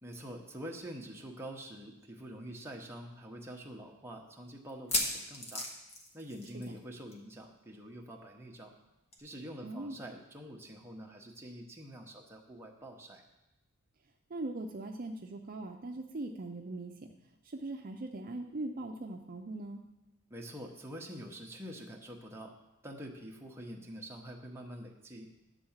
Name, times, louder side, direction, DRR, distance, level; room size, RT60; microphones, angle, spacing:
voice 1, 0.0-5.7 6.1-8.7 9.2-13.2 20.3-22.5 22.8-25.3, equal, 10° right, 0 dB, 0.9 m, -46 dB
sound 1, 2.0-2.1 2.4-2.5 3.1-3.2 4.7-6.8 7.1-7.3 7.6-7.7 9.1-9.2, left 1 dB, 30° left, 1.2 m, -36 dB
voice 2, 9.6-10.0 14.3-16.9 17.4-19.8, right 2 dB, 45° right, 2 dB, 0.5 m, -40 dB
10.0 x 3.7 x 7.2 m, 0.98 s
head